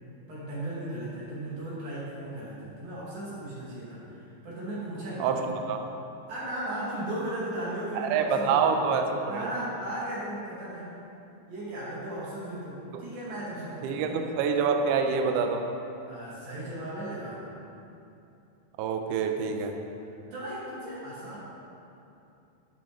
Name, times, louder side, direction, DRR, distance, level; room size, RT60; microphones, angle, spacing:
voice 1, 0.3-5.3 6.3-8.9 9.2-10.9 11.5-14.3 16.1-17.4 20.3-21.4, right 1 dB, 65° right, -9 dB, 3.8 m, -36 dB
voice 2, 5.2-5.8 8.0-9.2 12.9-13.0 13.8-15.6 18.8-19.7, right 5 dB, 85° right, 4 dB, 1.8 m, -26 dB
12.0 x 9.2 x 3.2 m, 2.7 s
omnidirectional pair, 4.5 m